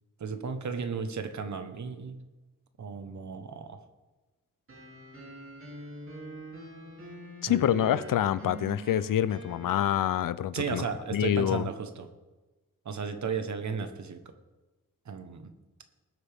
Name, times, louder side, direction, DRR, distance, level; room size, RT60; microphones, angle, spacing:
voice 1, 0.2-2.2 2.8-3.8 7.5-8.0 10.5-12.1 12.8-14.3 15.0-15.5, right 5 dB, 60° right, 8 dB, 1.2 m, -35 dB
sound 1, 4.7-10.2, right 1 dB, 40° right, 2.6 m, -44 dB
voice 2, 7.4-10.8 11.1-11.7, left 11 dB, 85° left, 16 dB, 0.5 m, -26 dB
19.5 x 8.3 x 3.6 m, 1.2 s
wide cardioid pair, 145°, 32 cm